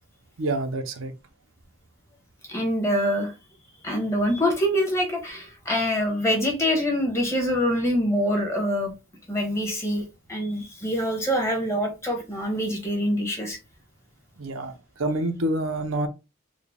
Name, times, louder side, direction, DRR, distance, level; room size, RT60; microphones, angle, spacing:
voice 1, 0.4-1.1 14.4-14.7 15.0-16.1, right 1 dB, 90° right, 0.6 m, -27 dB
voice 2, 2.5-3.3 3.8-8.9 9.3-10.0 10.3-13.6, equal, 15° left, 1.0 m, -25 dB
3.7 x 2.2 x 3.5 m
head